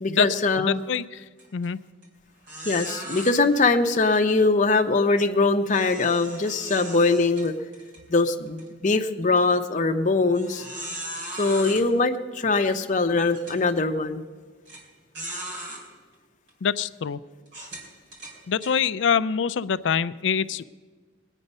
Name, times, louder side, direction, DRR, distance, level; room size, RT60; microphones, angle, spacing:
voice 1, 0.0-0.8 2.7-7.5 8.1-10.7 11.4-14.3, left 3 dB, 40° left, 5 dB, 0.7 m, -22 dB
voice 2, 0.6-1.2 1.5-1.8 16.6-17.2 18.5-20.6, left 7 dB, 65° left, 15 dB, 0.4 m, -25 dB
sound 1, 1.4-1.7 2.0-2.1 2.5-3.3 5.7-8.0 8.5-8.6 9.2-9.3 10.3-11.8 12.7-12.8 13.3-13.6 14.7-14.8 15.1-15.8 16.5-16.6 17.5-18.7, right 1 dB, 60° right, 3.5 m, -37 dB
20.5 x 9.1 x 5.4 m, 1.4 s
head